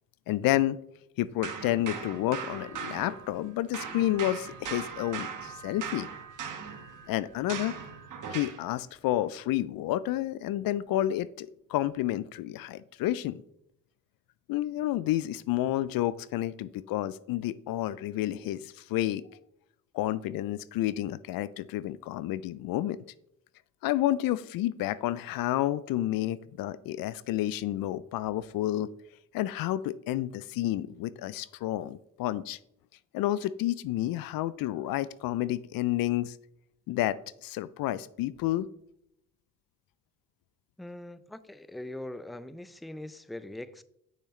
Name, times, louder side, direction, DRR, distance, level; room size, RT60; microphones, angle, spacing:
voice 1, 0.3-0.8 1.2-6.1 7.1-7.7 8.3-13.4 14.5-19.2 19.9-23.0 23.8-28.9 29.3-32.6 33.1-36.4 36.9-38.7, left 14 dB, 70° left, 18 dB, 0.5 m, -30 dB
sound 1, 1.4-3.5 3.7-8.7, right 6 dB, 55° right, 1.3 m, -39 dB
voice 2, 40.8-43.8, left 1 dB, ahead, 14 dB, 0.5 m, -42 dB
8.7 x 6.5 x 3.2 m, 0.76 s
supercardioid pair, 55°, 37 cm